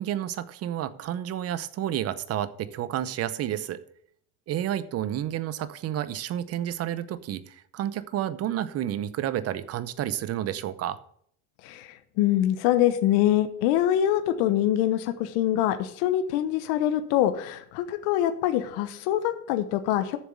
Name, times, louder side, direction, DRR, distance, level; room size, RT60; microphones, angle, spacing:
voice 1, 0.0-3.8 4.5-11.0, right 11 dB, 35° right, 15 dB, 0.7 m, -30 dB
voice 2, 11.6-20.2, left 12 dB, 60° left, 10 dB, 1.0 m, -24 dB
7.4 x 6.8 x 7.7 m, 0.65 s
supercardioid pair, 120°, 44 cm